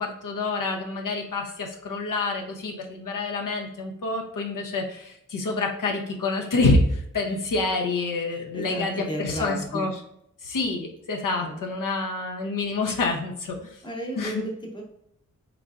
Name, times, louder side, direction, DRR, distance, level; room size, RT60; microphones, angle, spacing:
voice 1, 0.0-9.9 10.4-13.8 14.2-14.4, left 3 dB, 70° left, 1 dB, 0.7 m, -27 dB
voice 2, 8.3-9.9 11.4-11.7 13.8-14.8, right 1 dB, 15° left, -1 dB, 0.9 m, -34 dB
3.8 x 3.3 x 2.4 m, 0.77 s
wide cardioid pair, 130°, 33 cm